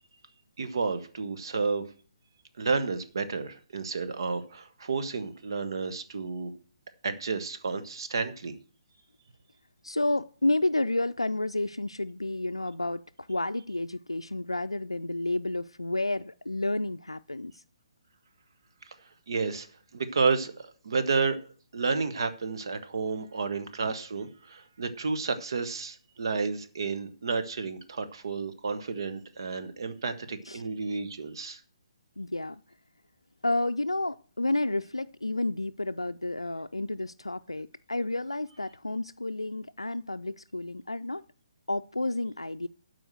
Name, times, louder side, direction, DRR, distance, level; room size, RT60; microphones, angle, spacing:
voice 1, 0.6-1.9 2.6-6.5 7.0-8.5 19.3-19.7 19.9-21.4 21.7-31.6, right 4 dB, 55° right, 1.4 m, -31 dB
voice 2, 9.8-17.6 30.5-30.6 32.2-32.6 33.4-41.2 41.7-42.7, left 2 dB, 85° left, 0.4 m, -30 dB
12.0 x 4.9 x 7.7 m
figure-of-eight pair, 135°, 3 cm